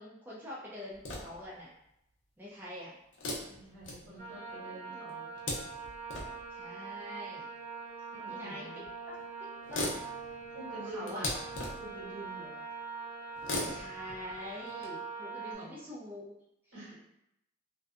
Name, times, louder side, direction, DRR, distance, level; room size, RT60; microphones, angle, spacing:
voice 1, 0.0-1.7 2.4-2.9 4.0-5.1 6.5-7.5 8.3-8.7 9.1-9.8 10.7-11.3 13.5-16.3, left 1 dB, 10° right, -7 dB, 0.4 m, -45 dB
sound 1, 0.9-1.5 3.1-4.5 5.1-6.5 7.6-7.7 8.8-8.9 9.2-9.3 9.5-12.0 13.3-14.9, left 1 dB, 80° left, 0.5 m, -39 dB
voice 2, 3.5-5.3 8.1-8.8 10.5-11.4 11.8-12.7 15.5-15.8 16.7-17.0, right 1 dB, 80° right, -8 dB, 1.3 m, -47 dB
sound 2, 4.2-15.5, right 5 dB, 40° right, 0.7 m, -43 dB
2.6 x 2.1 x 2.3 m, 0.81 s
head